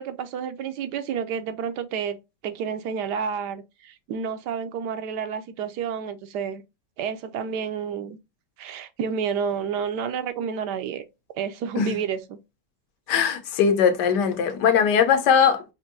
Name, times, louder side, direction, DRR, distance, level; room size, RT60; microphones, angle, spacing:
voice 1, 0.0-2.2 2.4-6.6 7.0-8.2 8.6-11.0 11.3-12.4, right 7 dB, 80° right, 1.2 m, -30 dB
voice 2, 13.1-15.6, left 7 dB, 80° left, 1.4 m, -20 dB
5.1 x 2.6 x 2.5 m
omnidirectional pair, 1.8 m